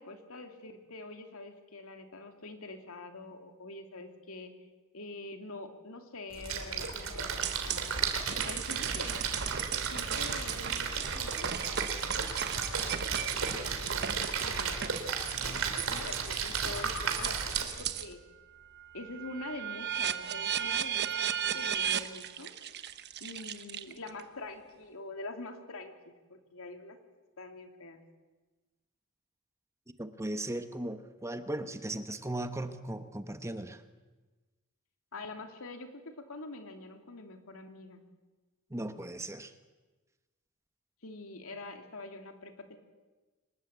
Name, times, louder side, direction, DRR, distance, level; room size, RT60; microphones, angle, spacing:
voice 1, 0.0-4.5 4.9-8.0 8.4-9.2 9.9-11.8 12.5-15.1 15.4-18.2 18.9-22.5 23.2-27.0 27.4-28.0 35.1-38.0 41.0-42.8, left 2 dB, 75° left, 5 dB, 3.0 m, -45 dB
Splash splatter, 6.3-17.6, right 5 dB, 65° right, 3.6 m, -34 dB
sound 1, 7.4-18.1 18.6-24.2, right 9 dB, 50° right, 1.2 m, -36 dB
voice 2, 30.0-33.8 38.7-39.5, right 1 dB, 15° right, 9 dB, 1.1 m, -37 dB
25.0 x 20.0 x 8.3 m, 1.2 s
head